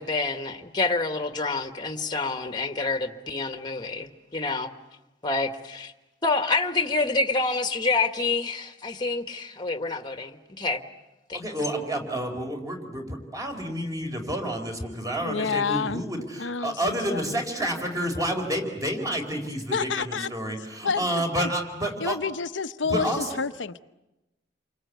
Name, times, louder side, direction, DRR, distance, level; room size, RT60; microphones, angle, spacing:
voice 1, 0.0-4.7 5.2-5.9 6.2-10.8 11.3-11.4, left 3 dB, 25° left, 7 dB, 1.5 m, -27 dB
voice 2, 11.3-22.2 22.8-23.3, right 1 dB, 20° right, 4 dB, 4.3 m, -29 dB
voice 3, 15.2-16.0 16.4-17.4 19.7-20.3 20.8-21.5 22.0-23.8, left 5 dB, 90° left, 10 dB, 0.9 m, -29 dB
29.0 x 24.5 x 8.2 m, 0.97 s
head